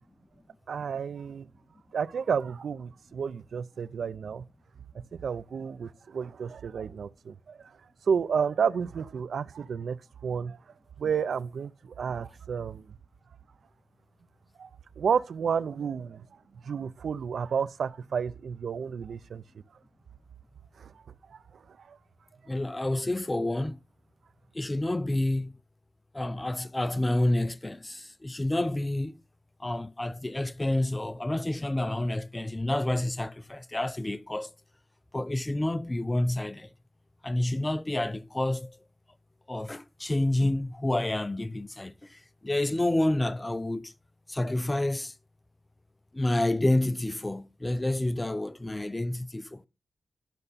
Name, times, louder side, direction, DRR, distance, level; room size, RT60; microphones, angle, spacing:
voice 1, 0.7-1.5 1.9-4.4 5.2-7.7 8.1-10.0 10.2-10.6 11.0-12.9 14.6-14.7 15.0-16.2 16.6-19.4 20.8-20.9 21.3-22.0, right 6 dB, 80° right, 0.5 m, -31 dB
voice 2, 22.5-23.8 24.5-25.6 26.1-29.2 29.6-34.5 35.1-36.7 37.2-38.8 39.5-43.9 44.3-45.1 46.1-49.6, left 1 dB, 20° left, 0.7 m, -29 dB
12.0 x 6.7 x 4.1 m
cardioid pair, 70°, 0 cm